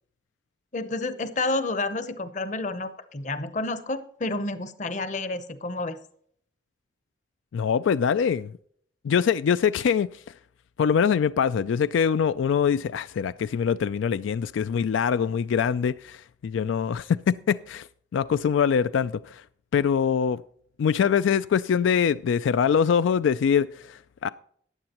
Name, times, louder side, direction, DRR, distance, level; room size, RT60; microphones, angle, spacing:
voice 1, 0.7-6.0, left 2 dB, 40° left, 0.8 m, -30 dB
voice 2, 7.5-8.5 9.0-10.2 10.8-17.9 18.1-19.4 19.7-20.4 20.8-24.3, left 7 dB, 85° left, 0.3 m, -23 dB
14.5 x 9.6 x 3.0 m
head